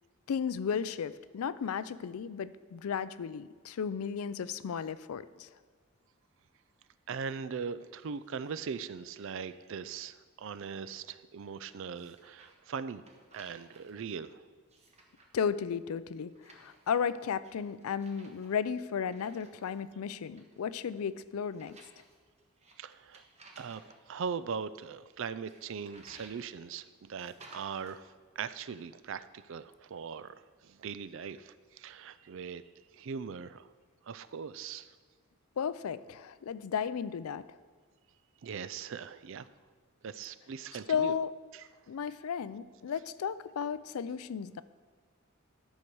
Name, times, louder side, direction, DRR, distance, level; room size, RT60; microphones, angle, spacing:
voice 1, 0.3-5.5 15.3-21.8 35.6-37.4 40.9-41.3 41.9-44.6, left 7 dB, 85° left, 15 dB, 0.4 m, -34 dB
voice 2, 7.1-13.0 13.3-14.5 22.8-23.2 23.6-23.8 24.1-30.3 30.6-32.6 32.9-33.7 34.0-34.9 38.4-39.5 40.0-41.1 41.5-41.6, right 6 dB, 60° right, 15 dB, 0.4 m, -40 dB
sound 1, 11.9-12.6 12.9-13.9 14.6-15.3 16.3-17.1 17.4-19.8 20.1-20.6 21.4-24.0 25.5-26.5 27.2-28.0, right 2 dB, 30° right, 1.3 m, -57 dB
11.5 x 6.6 x 4.6 m, 1.5 s
head